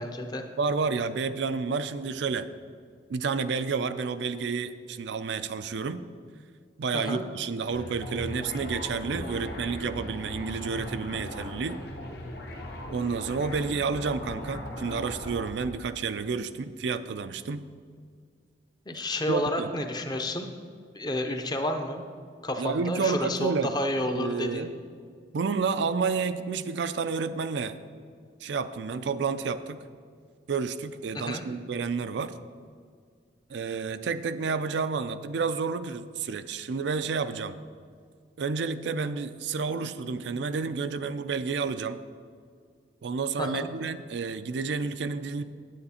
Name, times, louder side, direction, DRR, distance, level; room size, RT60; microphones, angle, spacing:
voice 1, 0.0-0.4 6.9-7.2 18.9-20.5 20.9-22.0 22.4-24.7 31.1-31.4 43.4-43.7, left 1 dB, 20° left, 5 dB, 0.6 m, -30 dB
voice 2, 0.6-2.5 3.1-6.0 6.8-11.8 12.9-17.6 19.3-19.7 22.6-23.7 24.1-24.7 25.3-27.7 28.4-29.8 30.5-32.3 33.5-37.6 38.4-42.0 43.0-45.4, right 5 dB, 70° right, 11 dB, 0.4 m, -30 dB
sound 1, 7.7-15.9, left 1 dB, 55° left, 1.0 m, -38 dB
9.2 x 8.6 x 4.2 m, 2.1 s
head